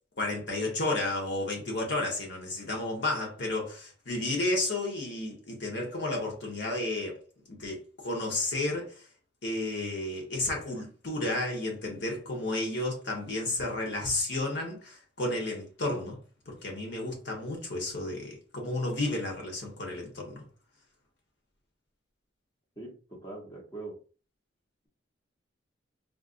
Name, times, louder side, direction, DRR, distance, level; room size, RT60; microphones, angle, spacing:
voice 1, 0.2-7.2 7.5-9.0 9.4-16.2 16.5-20.5, left 2 dB, 65° left, 1.0 m, -32 dB
voice 2, 22.8-24.0, right 2 dB, 20° left, 0.9 m, -42 dB
3.7 x 2.4 x 2.4 m
head